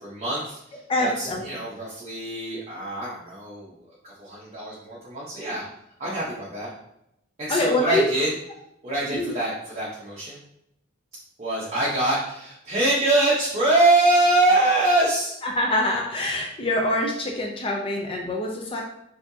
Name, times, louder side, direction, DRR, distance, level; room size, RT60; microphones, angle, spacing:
voice 1, 0.0-3.7 4.0-5.6 6.0-6.7 7.4-8.3 8.8-10.4 11.4-15.3, right 2 dB, 35° right, -8 dB, 1.0 m, -24 dB
voice 2, 0.9-1.4 7.5-8.0 9.1-9.3 15.6-18.8, left 1 dB, 30° left, 0 dB, 0.6 m, -24 dB
4.3 x 2.8 x 2.8 m, 0.79 s
head